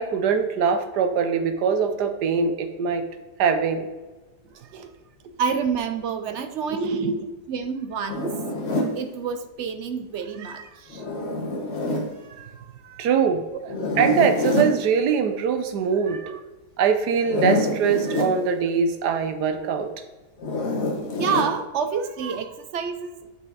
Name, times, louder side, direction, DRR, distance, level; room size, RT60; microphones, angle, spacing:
voice 1, 0.0-3.0 3.4-3.9 4.7-4.9 6.7-7.2 13.0-13.4 14.0-16.2 16.8-19.9, right 6 dB, 85° right, 7 dB, 1.4 m, -22 dB
voice 2, 5.4-7.0 7.5-8.4 9.0-11.2 12.2-13.1 13.5-13.7 16.0-16.4 18.1-18.2 21.2-23.3, right 6 dB, 65° right, 8 dB, 0.7 m, -29 dB
Zipper (clothing), 8.1-9.0 10.9-12.1 13.7-14.8 17.2-18.3 20.4-21.5, left 2 dB, 45° left, 1.5 m, -26 dB
8.9 x 4.9 x 4.0 m, 1.2 s
omnidirectional pair, 1.7 m